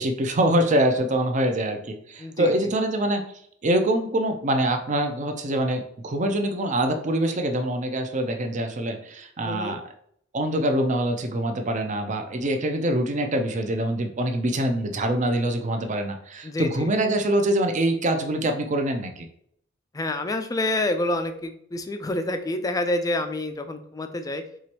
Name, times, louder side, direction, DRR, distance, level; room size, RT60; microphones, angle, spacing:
voice 1, 0.0-3.2 3.6-9.8 10.3-19.3, right 1 dB, 40° right, 5 dB, 0.6 m, -24 dB
voice 2, 2.2-2.5 9.5-9.8 16.4-16.9 19.9-24.4, left 1 dB, 20° left, 7 dB, 0.4 m, -28 dB
4.9 x 3.0 x 2.9 m, 0.66 s
head